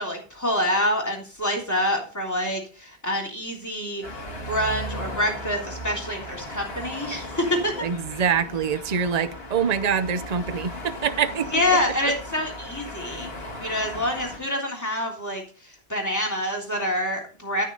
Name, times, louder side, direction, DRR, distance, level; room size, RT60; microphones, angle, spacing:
voice 1, 0.0-4.0 4.5-7.9 11.5-13.3 13.6-15.4 15.9-17.6, left 1 dB, 15° left, 3.4 m, -26 dB
sound 1, 4.0-14.4, left 1 dB, 70° left, 2.5 m, -36 dB
voice 2, 7.8-11.8 12.1-12.2, right 7 dB, 40° right, 0.8 m, -25 dB
13.5 x 6.6 x 3.9 m
omnidirectional pair, 1.1 m